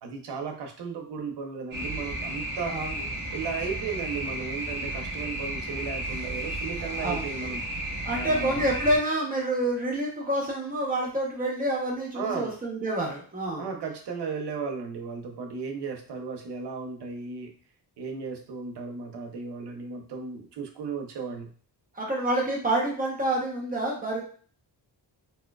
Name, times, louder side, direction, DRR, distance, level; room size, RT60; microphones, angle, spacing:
voice 1, 0.0-2.8 3.3-7.6 8.1-8.7 12.1-12.5 13.6-17.5 18.0-21.5, right 5 dB, 70° right, 3 dB, 0.7 m, -35 dB
sound 1, 1.7-9.0, right 1 dB, 45° right, 1.5 m, -33 dB
voice 2, 2.7-3.0 7.0-7.3 8.0-13.7 21.9-24.2, right 1 dB, 20° right, -2 dB, 0.8 m, -28 dB
4.2 x 2.3 x 2.3 m, 0.43 s
wide cardioid pair, 160°, 43 cm